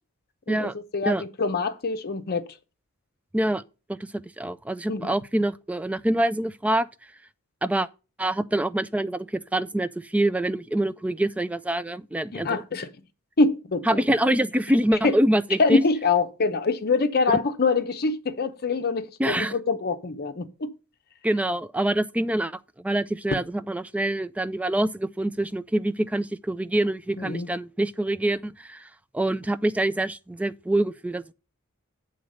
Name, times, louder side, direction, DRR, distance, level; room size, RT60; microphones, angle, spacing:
voice 1, 0.5-2.4 4.9-5.1 12.3-12.9 13.4-14.0 15.0-15.1 15.6-20.7 27.2-27.5, left 3 dB, 45° left, 0.7 m, -24 dB
voice 2, 4.4-6.9 7.6-7.9 8.2-12.6 13.9-15.8 19.2-19.6 21.2-22.5 22.8-31.3, right 1 dB, 5° right, 0.3 m, -25 dB
8.1 x 4.0 x 6.4 m
head